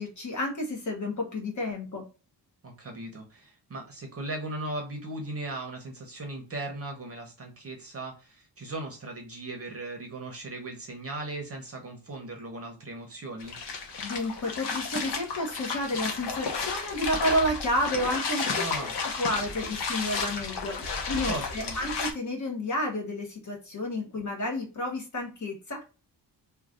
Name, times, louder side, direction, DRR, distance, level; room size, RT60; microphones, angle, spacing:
voice 1, 0.0-2.1 14.0-18.6 19.2-25.8, left 1 dB, 40° left, 1 dB, 1.1 m, -31 dB
voice 2, 2.6-13.6 18.5-18.9 21.2-21.8, right 2 dB, 35° right, 2 dB, 0.7 m, -38 dB
sound 1, 13.4-22.1, left 4 dB, 65° left, 0.8 m, -32 dB
3.1 x 2.3 x 3.7 m, 0.32 s
wide cardioid pair, 175°, 43 cm